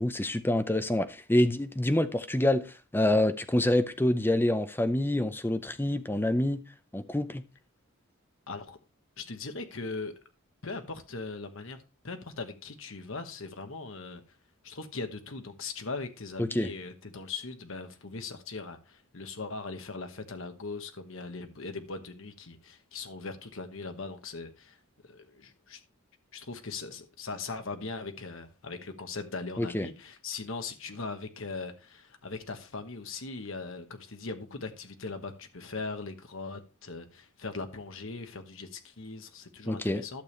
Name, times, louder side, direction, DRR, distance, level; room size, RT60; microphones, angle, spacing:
voice 1, 0.0-6.6 6.9-7.4 16.4-16.7 29.6-29.9 39.7-40.0, left 1 dB, 10° left, 0.6 m, -27 dB
voice 2, 8.5-8.8 9.2-10.1 10.6-14.2 14.6-24.8 25.1-25.8 26.3-40.2, left 3 dB, 60° left, 1.2 m, -40 dB
11.5 x 6.9 x 3.2 m
head